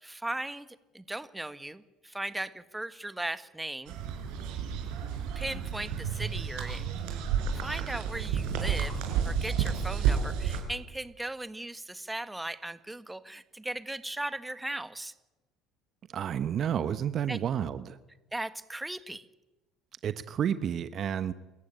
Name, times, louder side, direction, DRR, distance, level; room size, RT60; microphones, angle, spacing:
voice 1, 0.0-0.7 0.9-3.9 5.3-6.9 7.5-9.0 9.2-15.1 17.3-17.4 18.3-19.2, right 1 dB, 10° right, 13 dB, 1.5 m, -37 dB
sound 1, 3.9-10.6, right 7 dB, 70° right, 5.1 m, -31 dB
voice 2, 16.1-18.0 20.0-21.3, right 9 dB, 45° right, 13 dB, 1.0 m, -30 dB
27.0 x 15.0 x 9.0 m, 1.1 s
hypercardioid pair, 70°, 0 cm